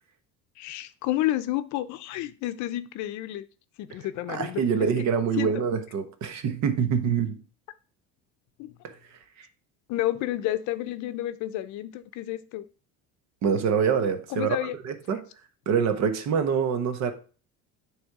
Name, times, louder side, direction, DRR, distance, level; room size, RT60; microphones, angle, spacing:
voice 1, 0.6-3.5 3.8-4.9 5.4-5.5 8.6-8.7 9.9-12.6 14.3-14.8, left 14 dB, 60° left, 0.6 m, -30 dB
voice 2, 4.3-7.4 8.8-8.9 13.4-15.2 15.7-17.1, right 6 dB, 55° right, 1.1 m, -25 dB
9.3 x 3.4 x 4.7 m
cardioid pair, 165°, 32 cm